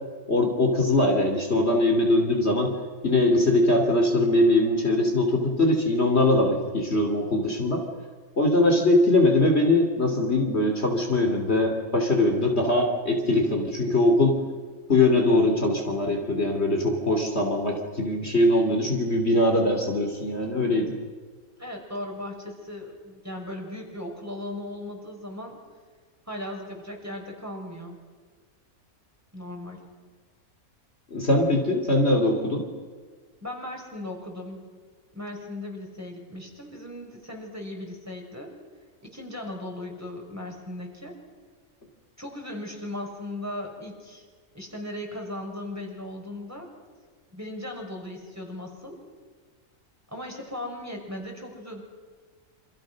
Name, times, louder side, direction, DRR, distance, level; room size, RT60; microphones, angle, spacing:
voice 1, 0.3-2.7 3.0-7.9 8.4-14.4 14.9-20.9 31.1-32.7, left 1 dB, 45° left, 2 dB, 3.4 m, -22 dB
voice 2, 21.6-25.6 26.3-28.0 29.3-29.9 33.4-34.8 35.1-38.5 39.0-41.2 42.2-44.2 44.5-46.7 47.3-49.0 50.1-51.8, left 1 dB, 10° right, 0 dB, 6.1 m, -37 dB
28.5 x 27.5 x 6.4 m, 1.5 s
omnidirectional pair, 1.5 m